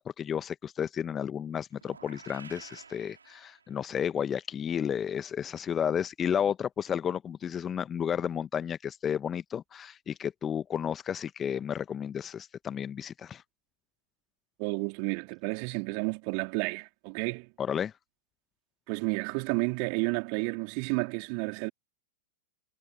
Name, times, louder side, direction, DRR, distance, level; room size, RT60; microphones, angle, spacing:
voice 1, 0.0-13.4 17.6-17.9, left 8 dB, 25° left, 1.3 m, -32 dB
sound 1, 1.7-4.0, right 5 dB, 75° right, 4.9 m, -51 dB
voice 2, 14.6-17.5 18.9-21.7, right 40 dB or more, 45° right, 3.6 m, -31 dB
figure-of-eight pair, 90°, 0 cm